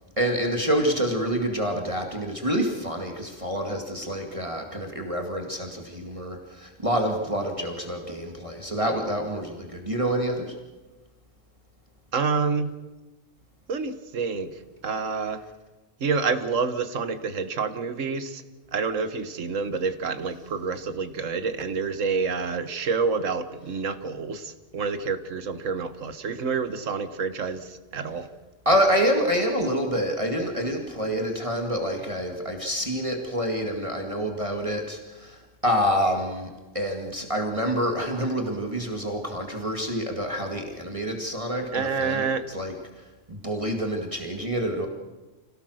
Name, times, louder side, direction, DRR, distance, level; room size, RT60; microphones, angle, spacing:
voice 1, 0.2-10.5 28.7-36.5 36.7-44.9, equal, 25° right, 2 dB, 2.2 m, -27 dB
voice 2, 12.1-12.7 13.7-14.5 14.8-15.4 16.0-18.4 18.7-28.3 41.7-42.4, right 5 dB, 80° right, 10 dB, 1.7 m, -28 dB
27.0 x 17.0 x 6.5 m, 1.2 s
omnidirectional pair, 1.3 m